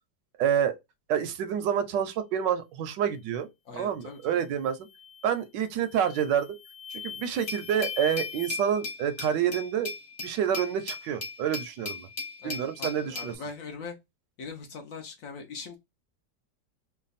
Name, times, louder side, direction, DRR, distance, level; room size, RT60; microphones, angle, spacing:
voice 1, 0.4-0.7 1.1-3.5 3.7-4.8 5.2-6.6 6.9-9.9 10.2-12.1 12.4-13.3, right 9 dB, 80° right, 1.3 m, -28 dB
voice 2, 3.7-4.4 12.4-13.9 14.4-15.8, left 4 dB, 60° left, 1.0 m, -41 dB
sound 1, 4.1-4.4 4.8-5.3 5.8-8.5, left 8 dB, 85° left, 0.6 m, -42 dB
Glass, 7.5-13.3, left 4 dB, 25° left, 0.9 m, -37 dB
3.3 x 2.2 x 3.9 m
omnidirectional pair, 1.9 m